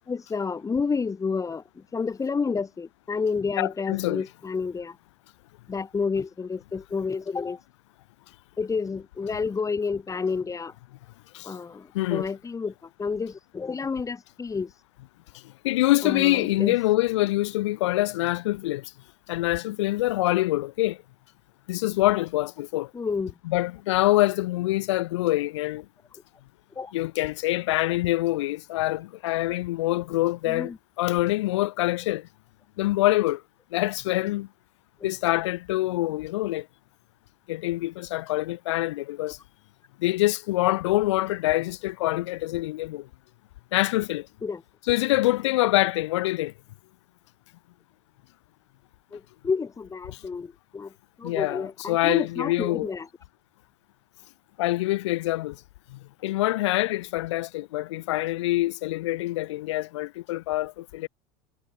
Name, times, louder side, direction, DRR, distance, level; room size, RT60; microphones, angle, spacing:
voice 1, 0.1-5.0 5.7-7.6 8.6-10.7 11.4-12.7 13.0-14.7 16.0-16.8 22.9-23.3 26.8-26.9 30.5-30.8 35.0-35.1 44.4-44.6 49.1-50.9 51.2-53.1, left 5 dB, 20° left, 5.8 m, -30 dB
voice 2, 3.6-4.2 11.3-11.5 11.9-12.3 15.6-18.9 19.3-21.0 21.7-22.9 23.4-25.8 26.9-30.7 31.0-32.3 32.8-33.4 33.7-34.5 35.0-36.7 37.5-39.4 40.0-43.1 43.7-44.3 44.9-46.5 50.1-50.2 51.2-52.9 54.6-55.6 55.9-61.1, left 17 dB, 80° left, 3.2 m, -25 dB
supercardioid pair, 95°, 15 cm